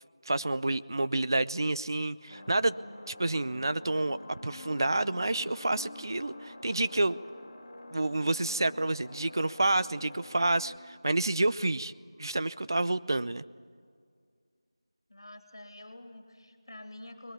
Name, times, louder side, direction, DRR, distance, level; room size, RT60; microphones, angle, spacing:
voice 1, 0.3-2.7 3.1-7.2 7.9-11.9 12.2-13.4, right 2 dB, 50° right, 15 dB, 0.6 m, -29 dB
sound 1, 0.9-13.1, left 2 dB, 15° left, 1.0 m, -56 dB
sound 2, 2.3-10.8, left 1 dB, 35° left, 3.6 m, -48 dB
voice 2, 15.1-17.3, left 1 dB, 60° left, 6 dB, 2.9 m, -47 dB
21.0 x 20.5 x 8.6 m, 2.1 s
figure-of-eight pair, 170°, 3 cm